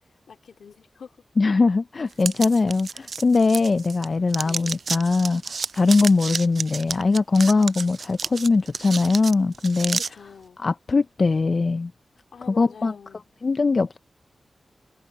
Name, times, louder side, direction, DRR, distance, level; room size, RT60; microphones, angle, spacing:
voice 1, 0.3-1.2 4.4-4.8 10.0-10.6 12.3-13.2, left 6 dB, 85° left, 2.8 m, -45 dB
voice 2, 1.4-10.0 10.6-11.9 12.5-12.9 13.4-14.0, left 3 dB, 50° left, 0.4 m, -21 dB
sound 1, 2.2-4.0 4.3-10.1, right 5 dB, 70° right, 0.4 m, -31 dB
cardioid pair, 65°, 0 cm